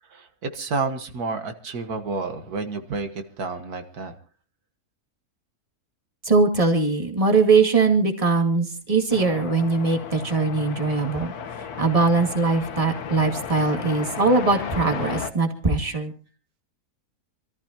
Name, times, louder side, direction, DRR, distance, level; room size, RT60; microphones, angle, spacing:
voice 1, 0.1-4.1, right 4 dB, 85° right, 7 dB, 2.0 m, -30 dB
voice 2, 6.2-11.3 11.8-16.1, right 4 dB, 25° right, 4 dB, 2.2 m, -21 dB
sound 1, 9.1-15.3, left 7 dB, 85° left, 1.6 m, -34 dB
27.0 x 14.0 x 2.9 m, 0.38 s
omnidirectional pair, 1.6 m